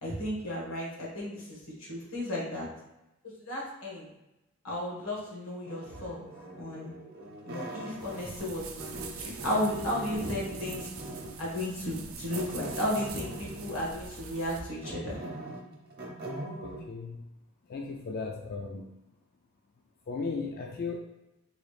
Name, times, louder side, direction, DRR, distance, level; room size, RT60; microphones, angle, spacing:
voice 1, 0.0-2.7 3.4-4.1 4.6-6.2 6.6-6.9 7.4-10.9 11.4-15.2, left 1 dB, 90° left, -4 dB, 1.5 m, -34 dB
sound 1, 5.6-8.5 8.8-11.5 12.3-13.9 14.3-16.8, right 1 dB, 45° right, 0.7 m, -41 dB
sound 2, 8.0-14.6, right 5 dB, 85° right, 0.5 m, -44 dB
voice 2, 16.6-17.2 17.7-18.9 20.1-21.0, left 4 dB, 45° left, 1 dB, 0.3 m, -36 dB
3.9 x 2.4 x 3.2 m, 0.94 s
head